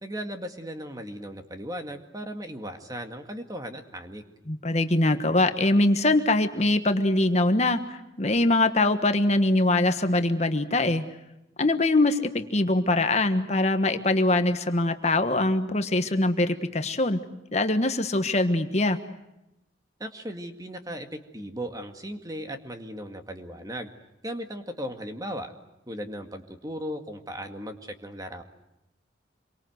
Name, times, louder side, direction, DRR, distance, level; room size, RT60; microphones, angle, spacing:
voice 1, 0.0-4.2 20.0-23.9 24.2-25.5 25.9-28.4, equal, 20° right, 6 dB, 2.0 m, -37 dB
voice 2, 4.5-11.0 11.6-17.2 17.5-19.0, left 2 dB, 35° left, 8 dB, 1.3 m, -23 dB
27.0 x 24.0 x 7.9 m, 0.91 s
head